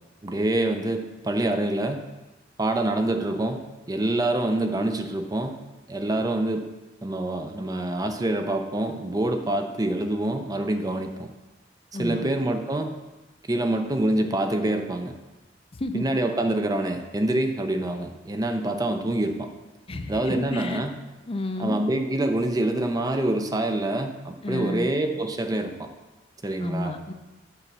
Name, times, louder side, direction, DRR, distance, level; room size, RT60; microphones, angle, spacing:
voice 1, 0.2-2.0 2.6-3.6 3.9-5.6 5.9-6.7 7.0-11.3 12.0-12.9 13.5-15.1 15.9-19.5 20.1-21.0 21.6-25.9 26.4-26.9, right 1 dB, 20° right, 6 dB, 0.5 m, -26 dB
voice 2, 11.9-12.3 15.7-16.0 19.9-20.8 21.3-21.8 24.4-24.9 26.6-27.1, left 1 dB, 30° left, 6 dB, 0.6 m, -30 dB
6.9 x 5.3 x 5.9 m, 1.1 s
head